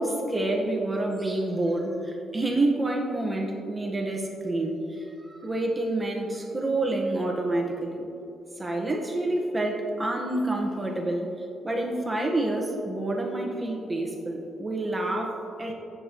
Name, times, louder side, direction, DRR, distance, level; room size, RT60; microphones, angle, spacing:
voice 1, 0.0-8.1 8.6-11.3 11.6-15.7, right 2 dB, 20° right, 1 dB, 1.2 m, -28 dB
16.0 x 8.0 x 3.0 m, 2.9 s
cardioid pair, 90°, 0 cm